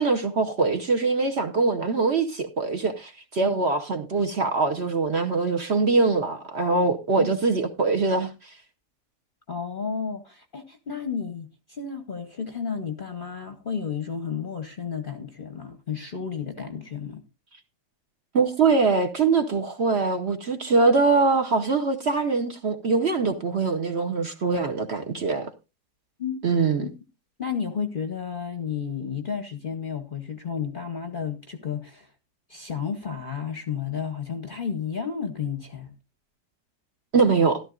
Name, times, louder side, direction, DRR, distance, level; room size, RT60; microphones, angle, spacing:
voice 1, 0.0-8.3 18.3-25.5 26.4-26.9 37.1-37.6, right 4 dB, 50° right, 1.0 m, -23 dB
voice 2, 9.5-17.2 26.2-26.4 26.8-26.9 27.4-32.1 32.5-35.9, left 6 dB, 40° left, 0.8 m, -32 dB
14.0 x 12.5 x 2.4 m
omnidirectional pair, 1.8 m